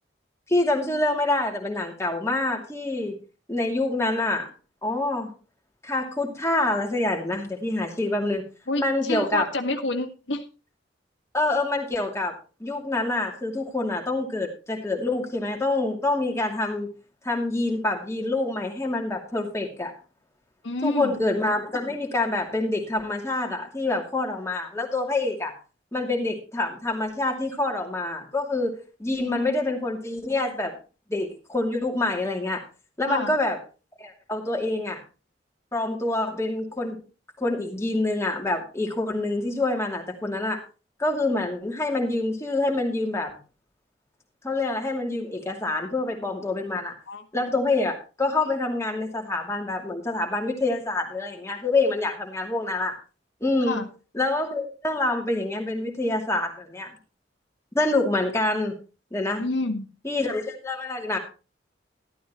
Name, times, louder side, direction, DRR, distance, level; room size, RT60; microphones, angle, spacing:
voice 1, 0.5-3.1 3.5-4.5 4.8-5.3 5.8-8.4 8.8-9.5 11.3-16.9 17.2-19.9 20.8-25.5 25.9-28.7 29.0-30.7 31.1-32.6 33.0-33.6 34.0-35.0 35.7-37.0 37.4-40.6 41.0-43.3 44.4-46.9 47.3-52.9 53.4-53.8 54.1-56.9 57.7-58.7 59.1-59.4 60.0-61.2, left 2 dB, 15° left, 0 dB, 2.5 m, -26 dB
voice 2, 8.7-10.4 20.6-21.2 29.3-29.5 33.1-33.4 47.1-47.2 53.6-53.9 59.4-59.9, left 2 dB, 85° left, 4 dB, 1.7 m, -28 dB
13.0 x 12.5 x 3.1 m, 0.34 s
head